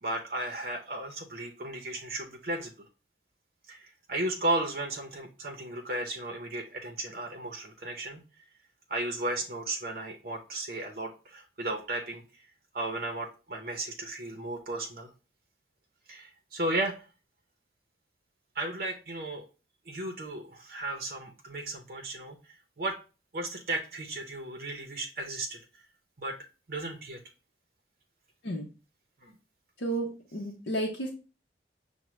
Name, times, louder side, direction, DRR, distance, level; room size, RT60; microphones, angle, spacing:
voice 1, 0.0-2.7 3.7-8.2 8.9-12.5 12.7-15.1 16.1-17.0 18.6-19.4 19.9-22.4 22.8-23.0 23.3-25.6 26.2-26.4 26.7-27.2 29.2-29.3, right 2 dB, 55° right, 2 dB, 0.6 m, -34 dB
voice 2, 29.8-31.1, right 1 dB, 70° left, -2 dB, 0.7 m, -32 dB
5.9 x 2.1 x 3.1 m, 0.33 s
head